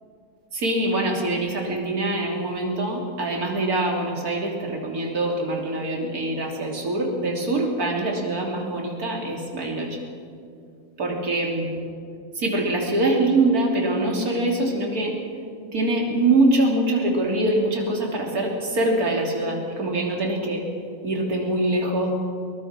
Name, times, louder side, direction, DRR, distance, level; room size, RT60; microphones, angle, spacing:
voice 1, 0.5-10.0 11.0-11.8 12.3-15.1 15.7-20.6 21.0-22.1, right 2 dB, 25° right, 0 dB, 3.3 m, -24 dB
22.5 x 20.5 x 6.1 m, 2.4 s
omnidirectional pair, 4.0 m